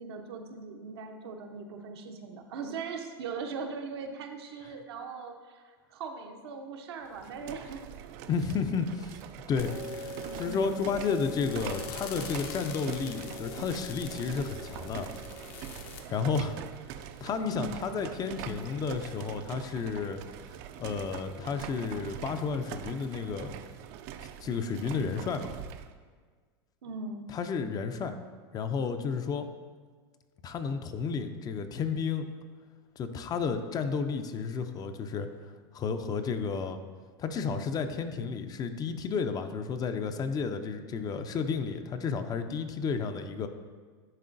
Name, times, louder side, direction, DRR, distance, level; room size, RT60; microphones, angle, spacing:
voice 1, 0.0-7.9 10.2-10.9 17.4-18.0 26.8-27.3, right 4 dB, 80° right, 4 dB, 0.7 m, -40 dB
sound 1, 7.0-25.9, right 10 dB, 55° right, 0.4 m, -43 dB
voice 2, 8.3-9.2 9.5-15.1 16.1-16.6 16.9-20.2 20.8-23.5 24.4-25.5 27.3-28.2 28.5-29.5 30.4-32.3 33.0-35.3 35.7-36.8 37.2-43.5, left 5 dB, 30° left, 8 dB, 0.4 m, -32 dB
sound 2, 9.6-16.0, left 3 dB, 60° left, 0.8 m, -41 dB
10.5 x 3.8 x 2.5 m, 1.6 s
hypercardioid pair, 105°, 13 cm